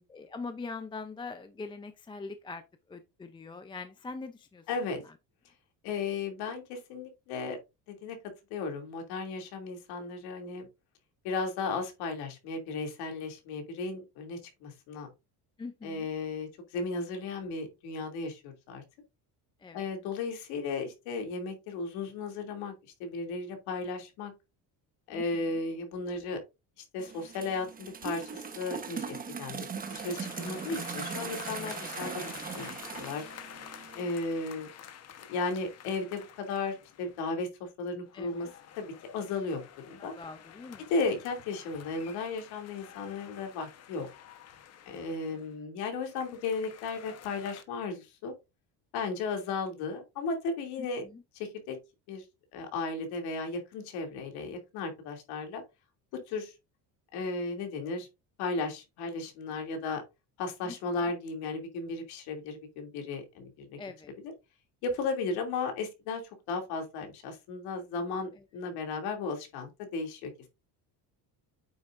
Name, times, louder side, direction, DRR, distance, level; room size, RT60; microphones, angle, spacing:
voice 1, 0.1-2.6 2.9-4.6 15.6-16.1 19.6-19.8 25.1-25.4 38.1-38.5 40.0-40.9 45.3-45.4 51.0-51.2 60.6-60.7 63.8-64.1, left 4 dB, 15° left, 0.5 m, -42 dB
voice 2, 4.7-5.0 5.8-7.6 7.9-8.2 8.5-10.7 11.2-15.1 15.8-18.8 19.7-22.7 23.0-24.3 25.1-26.4 26.9-33.2 33.9-34.7 35.3-38.5 38.8-40.1 40.8-44.1 44.9-48.3 48.9-51.0 51.3-51.8 52.1-52.2 52.5-55.6 56.3-56.5 57.1-58.1 58.4-60.0 60.4-63.8 64.2-64.3 64.8-66.2 66.5-70.5, left 3 dB, 85° left, 2.8 m, -35 dB
sound 1, 27.0-34.1, right 6 dB, 25° right, 1.1 m, -40 dB
sound 2, 29.8-37.4 38.0-45.5 46.1-47.6, left 9 dB, 40° left, 1.1 m, -49 dB
8.9 x 7.1 x 2.6 m
cardioid pair, 145°, 37 cm